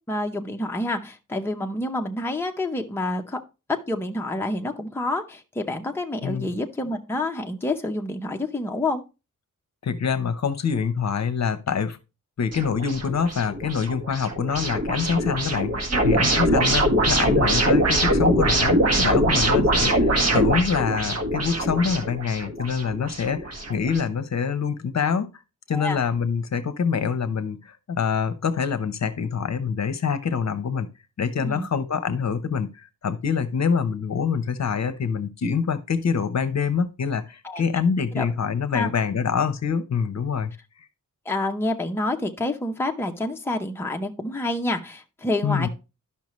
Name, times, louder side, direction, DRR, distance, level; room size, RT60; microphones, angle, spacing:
voice 1, 0.1-3.4 3.9-9.0 15.9-16.1 25.7-26.0 31.4-31.7 37.4-37.6 38.1-38.3 38.7-38.9 41.3-45.7, left 2 dB, 5° left, 0.7 m, -28 dB
voice 2, 9.8-12.0 12.4-25.3 25.7-30.9 31.2-40.5 45.4-45.7, left 6 dB, 55° left, 0.8 m, -25 dB
sound 1, 12.5-24.0, right 1 dB, 55° right, 1.8 m, -23 dB
12.0 x 5.7 x 3.1 m
wide cardioid pair, 150°, 32 cm